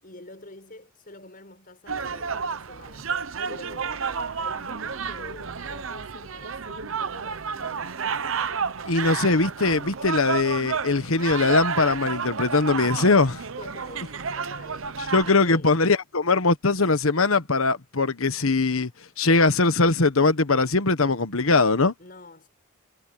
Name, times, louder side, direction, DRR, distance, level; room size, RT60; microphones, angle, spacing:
voice 1, 0.0-8.0 13.6-15.8 22.0-22.5, left 2 dB, 40° left, 7.3 m, -46 dB
sound 1, 1.9-15.3, right 6 dB, 65° right, 0.9 m, -31 dB
voice 2, 8.8-13.4 15.1-18.9 19.2-21.9, left 3 dB, 70° left, 1.3 m, -21 dB
head